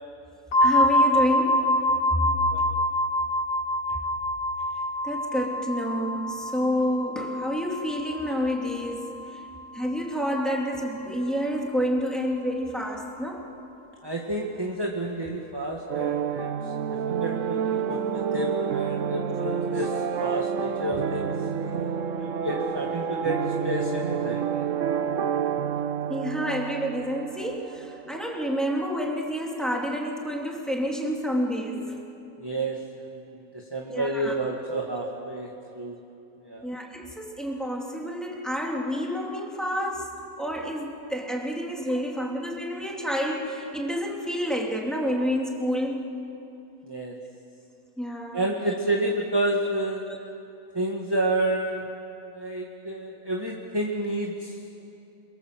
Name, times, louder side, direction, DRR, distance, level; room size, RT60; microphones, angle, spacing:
sound 1, 0.5-10.1, left 1 dB, 65° left, 1.6 m, -26 dB
voice 1, 0.6-1.7 5.0-9.1 9.7-13.4 19.7-19.8 26.1-32.0 33.9-34.3 36.6-40.1 40.4-46.0 48.0-48.4 48.7-48.8 50.1-50.2, equal, ahead, -1 dB, 2.8 m, -29 dB
voice 2, 14.0-24.7 32.4-36.0 36.4-36.7 46.8-47.2 48.3-50.0 50.7-51.9 52.3-54.6, right 1 dB, 15° right, -1 dB, 1.8 m, -30 dB
sound 2, 15.9-28.7, right 7 dB, 60° right, 1.1 m, -29 dB
28.5 x 23.0 x 7.6 m, 2.7 s
omnidirectional pair, 1.6 m